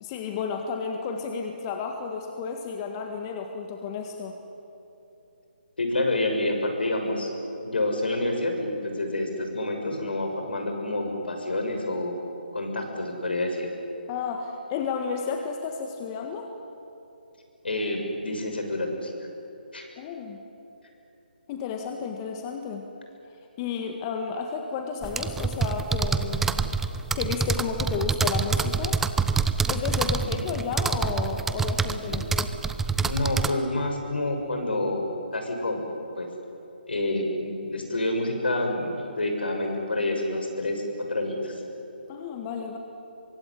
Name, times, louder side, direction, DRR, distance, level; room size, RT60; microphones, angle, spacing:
voice 1, 0.0-4.4 14.1-16.5 20.0-20.4 21.5-22.9 23.6-26.7 27.1-29.0 29.7-32.5 42.1-42.8, left 6 dB, 25° left, 4 dB, 1.8 m, -32 dB
voice 2, 5.8-7.3 7.6-12.2 12.5-13.7 17.6-19.1 19.7-19.9 30.1-30.3 31.8-32.2 32.9-35.8 36.2-36.3 36.9-40.8 41.1-41.6, left 2 dB, 75° left, 3 dB, 6.5 m, -28 dB
sound 1, 25.0-33.5, right 5 dB, 5° right, 0.6 m, -26 dB
24.0 x 22.0 x 10.0 m, 2.8 s
figure-of-eight pair, 150°, 6 cm